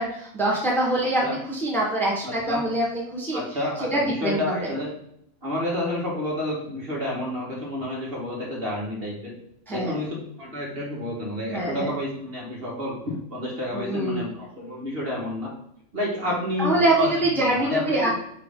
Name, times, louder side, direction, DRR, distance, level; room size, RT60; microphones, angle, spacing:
voice 1, 0.0-3.4 3.9-4.7 9.7-10.0 11.5-11.9 13.7-14.3 16.6-18.1, right 1 dB, ahead, -3 dB, 1.3 m, -24 dB
voice 2, 2.3-2.7 3.3-4.9 5.4-9.3 9.7-15.5 15.9-17.1 17.4-18.1, left 1 dB, 45° right, -3 dB, 1.9 m, -30 dB
8.0 x 3.4 x 3.7 m, 0.73 s
omnidirectional pair, 1.4 m